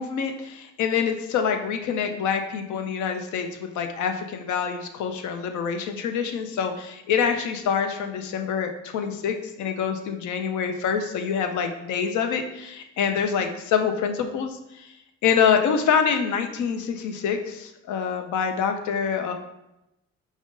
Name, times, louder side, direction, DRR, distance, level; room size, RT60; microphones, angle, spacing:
voice 1, 0.0-14.9 15.2-19.3, left 7 dB, 75° left, 6 dB, 0.5 m, -26 dB
5.2 x 2.1 x 3.7 m, 0.90 s
cardioid pair, 90°, 30 cm